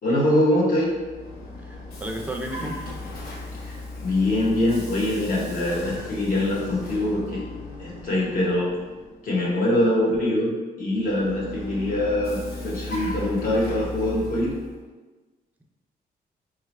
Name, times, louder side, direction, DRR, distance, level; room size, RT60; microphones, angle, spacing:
voice 1, 0.0-0.9 3.5-7.4 7.8-8.7 9.2-10.5 10.8-14.5, left 1 dB, 60° left, -4 dB, 1.1 m, -23 dB
Vehicle, 0.8-9.3 10.9-14.8, left 1 dB, 80° left, 0.8 m, -37 dB
voice 2, 1.6-2.7, right 1 dB, 10° right, 2 dB, 0.4 m, -33 dB
4.0 x 2.3 x 3.1 m, 1.2 s
cardioid pair, 135°, 16 cm